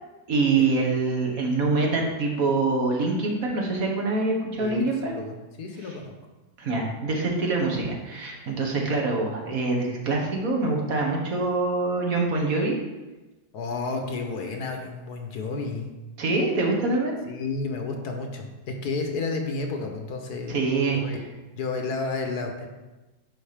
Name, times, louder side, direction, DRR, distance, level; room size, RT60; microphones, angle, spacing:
voice 1, 0.3-5.2 5.8-5.9 6.6-12.8 16.2-17.1 20.5-21.0, right 3 dB, 60° right, 0 dB, 1.7 m, -25 dB
voice 2, 4.6-6.1 13.5-15.9 17.3-20.5 20.9-21.2 21.5-22.7, left 3 dB, 70° left, 3 dB, 1.6 m, -31 dB
9.9 x 4.2 x 5.0 m, 1.1 s
omnidirectional pair, 1.8 m